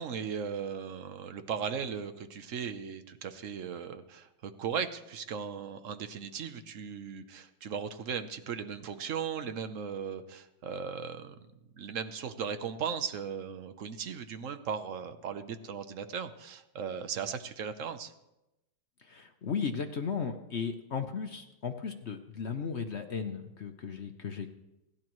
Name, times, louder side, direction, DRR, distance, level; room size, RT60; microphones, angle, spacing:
voice 1, 0.0-11.4 11.7-18.1, right 7 dB, 55° right, 9 dB, 0.9 m, -37 dB
voice 2, 19.0-24.5, left 6 dB, 65° left, 6 dB, 0.6 m, -35 dB
27.5 x 11.5 x 3.1 m, 0.94 s
omnidirectional pair, 2.2 m